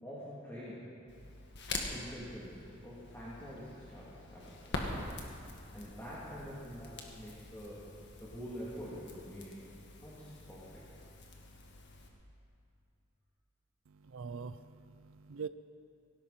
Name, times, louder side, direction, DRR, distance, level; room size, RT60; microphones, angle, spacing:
voice 1, 0.0-0.9 1.9-4.9 5.7-7.9 8.2-9.7 10.0-10.8, equal, 10° left, -9 dB, 3.0 m, -46 dB
Crackle, 1.1-12.1, left 2 dB, 60° left, 1.9 m, -45 dB
voice 2, 13.9-15.5, right 5 dB, 70° right, 12 dB, 0.5 m, -44 dB
18.5 x 17.0 x 4.4 m, 2.5 s
head